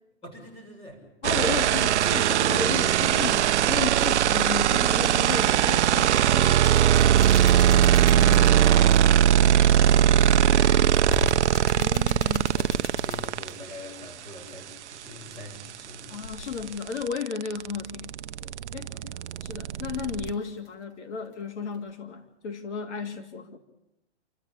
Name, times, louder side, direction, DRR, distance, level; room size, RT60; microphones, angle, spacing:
voice 1, 0.2-1.7 7.4-9.6 9.9-16.6 18.8-20.0, left 1 dB, 15° left, 0 dB, 7.0 m, -45 dB
voice 2, 1.2-6.7 11.8-12.5 16.1-18.2 18.4-19.1 19.4-23.6, left 6 dB, 75° left, 5 dB, 2.7 m, -34 dB
sound 1, 1.2-13.5 15.6-15.7 15.9-20.3, right 10 dB, 75° right, 0.7 m, -20 dB
sound 2, 3.2-3.4 5.1-5.9 6.3-9.2 11.0-13.7 16.1-16.7 19.2-20.8 21.2-21.3 21.7-21.9, left 3 dB, 50° left, 6.9 m, -39 dB
29.0 x 14.0 x 8.7 m, 0.89 s
hypercardioid pair, 155°, 34 cm